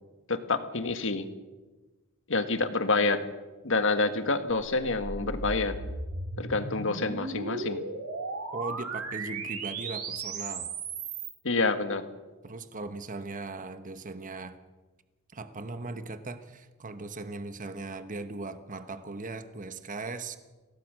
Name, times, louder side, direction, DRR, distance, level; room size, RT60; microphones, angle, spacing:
voice 1, 0.3-1.3 2.3-3.2 3.6-5.7 6.4-7.8 11.4-12.0, left 3 dB, 60° left, 9 dB, 1.7 m, -27 dB
sound 1, 4.6-11.3, right 3 dB, 85° right, 3.2 m, -36 dB
voice 2, 8.5-10.7 12.4-14.6 15.3-20.4, right 3 dB, 35° right, 10 dB, 1.1 m, -38 dB
23.5 x 17.5 x 6.4 m, 1.2 s
head